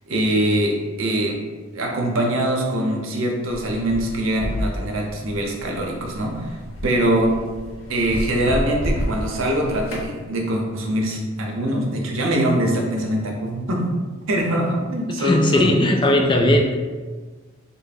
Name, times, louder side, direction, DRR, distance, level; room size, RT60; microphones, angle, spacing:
voice 1, 0.1-1.4 1.7-6.6 6.8-7.3 7.9-13.8 14.3-16.4, right 1 dB, 75° right, 1 dB, 0.6 m, -23 dB
sound 1, 3.5-10.1, equal, 75° left, 0.7 m, -30 dB
voice 2, 15.2-16.7, left 1 dB, 25° left, 3 dB, 0.3 m, -18 dB
3.3 x 2.0 x 4.0 m, 1.4 s
head